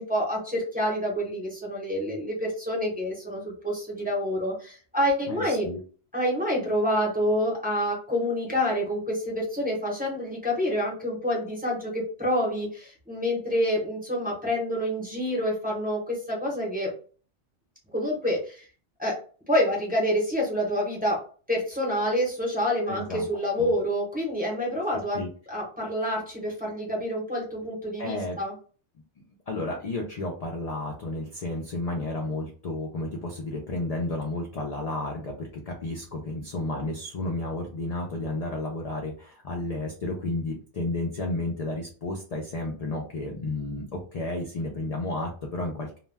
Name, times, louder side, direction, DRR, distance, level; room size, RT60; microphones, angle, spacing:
voice 1, 0.0-5.7 6.1-16.9 17.9-18.7 19.0-19.2 19.5-25.2 25.5-28.5, equal, 10° right, -4 dB, 0.7 m, -27 dB
voice 2, 5.3-5.8 22.9-23.3 23.6-23.7 24.9-25.3 28.0-28.4 29.2-46.0, left 2 dB, 60° left, 0 dB, 0.4 m, -32 dB
2.2 x 2.2 x 3.3 m, 0.41 s
omnidirectional pair, 1.2 m